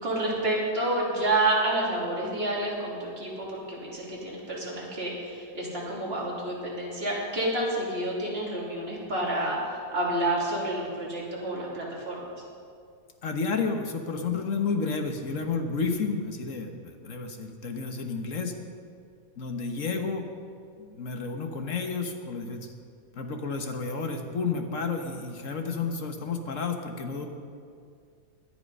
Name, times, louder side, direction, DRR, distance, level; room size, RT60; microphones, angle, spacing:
voice 1, 0.0-12.3, right 1 dB, 35° right, -5 dB, 3.4 m, -29 dB
voice 2, 13.2-18.5 19.4-20.3 20.8-22.7 23.1-27.3, left 4 dB, 50° left, 5 dB, 1.5 m, -31 dB
18.0 x 10.5 x 5.5 m, 2.3 s
omnidirectional pair, 1.9 m